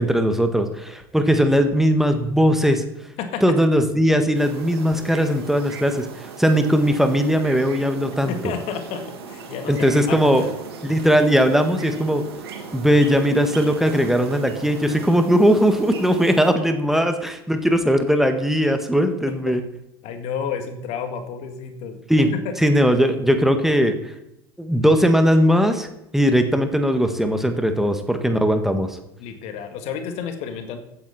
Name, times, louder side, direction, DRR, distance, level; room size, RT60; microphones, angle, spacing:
voice 1, 0.0-2.8 3.4-8.5 9.7-10.4 10.8-12.2 12.7-19.6 22.1-22.3 22.6-24.1 24.6-25.9 26.1-29.0, equal, 5° right, 6 dB, 1.6 m, -19 dB
Bullfinch Calls in UK, 4.3-16.5, right 5 dB, 80° right, 2.4 m, -38 dB
voice 2, 8.3-10.5 19.3-19.6 20.0-22.0 22.3-22.5 29.2-30.8, left 7 dB, 55° left, 6 dB, 2.0 m, -31 dB
15.0 x 9.3 x 4.2 m, 0.83 s
hypercardioid pair, 75°, 13 cm